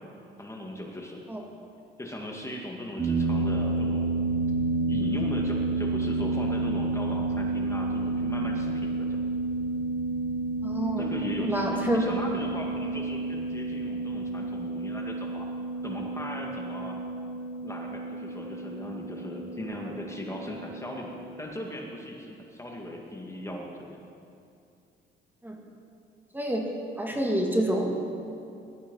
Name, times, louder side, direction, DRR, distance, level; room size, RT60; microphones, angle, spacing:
voice 1, 0.4-1.2 2.0-4.2 4.9-9.2 11.0-15.5 15.8-17.0 17.6-23.9, left 1 dB, 15° left, 0 dB, 2.1 m, -38 dB
sound 1, 3.0-21.4, right 2 dB, 45° right, 4.6 m, -30 dB
voice 2, 10.6-11.0 11.4-12.0 25.4-25.6 26.3-26.6 27.0-28.0, right 1 dB, 10° right, 0 dB, 2.3 m, -27 dB
19.0 x 13.0 x 5.5 m, 2.5 s
cardioid pair, 90°, 20 cm